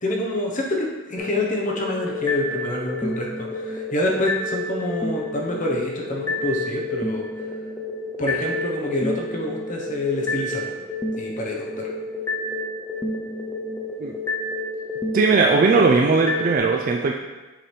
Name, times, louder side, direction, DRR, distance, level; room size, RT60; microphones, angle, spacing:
voice 1, 0.0-7.3 8.2-10.8 11.2-11.7, left 1 dB, 35° left, -1 dB, 0.9 m, -27 dB
sound 1, 1.2-16.6, left 1 dB, 10° left, 0.5 m, -30 dB
voice 2, 15.1-17.1, right 4 dB, 40° right, 1 dB, 0.3 m, -18 dB
7.4 x 3.3 x 4.4 m, 1.2 s
head